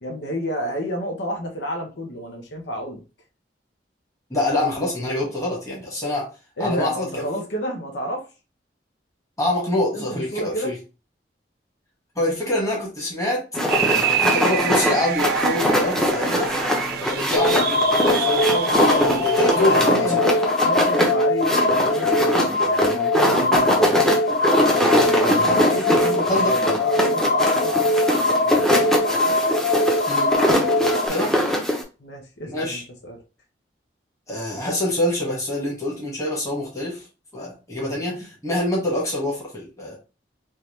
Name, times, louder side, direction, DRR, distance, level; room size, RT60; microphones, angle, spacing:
voice 1, 0.0-3.0 6.6-8.2 9.9-10.7 18.4-20.3 20.6-23.9 24.7-28.9 32.0-33.2 37.8-38.0, equal, 80° left, 1 dB, 0.9 m, -31 dB
voice 2, 4.3-6.3 6.6-7.2 9.4-10.7 12.1-13.4 13.8-16.5 17.0-20.0 25.2-25.5 25.8-26.0 26.3-26.5 30.1-30.3 31.1-31.6 32.5-32.8 34.3-37.0 37.3-40.0, left 1 dB, 20° left, -4 dB, 1.6 m, -26 dB
sound 1, 13.5-31.8, equal, 5° left, 0.8 m, -22 dB
sound 2, 13.7-19.8, right 9 dB, 60° right, 0.3 m, -27 dB
sound 3, 17.3-31.1, left 2 dB, 55° left, 0.5 m, -21 dB
3.7 x 2.8 x 3.1 m, 0.31 s
head